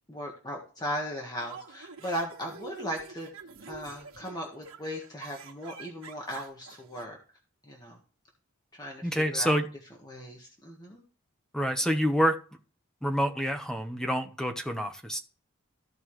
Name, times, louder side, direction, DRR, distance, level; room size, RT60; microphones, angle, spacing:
voice 1, 0.1-3.3 3.7-7.2 7.6-8.0 8.7-9.5 10.0-11.0, equal, 20° left, -1 dB, 1.6 m, -37 dB
sound 1, 1.4-7.0, right 4 dB, 85° right, 1.5 m, -46 dB
voice 2, 9.0-9.7 11.5-12.4 13.0-15.2, equal, 5° left, 6 dB, 0.9 m, -27 dB
14.5 x 5.3 x 3.2 m, 0.38 s
head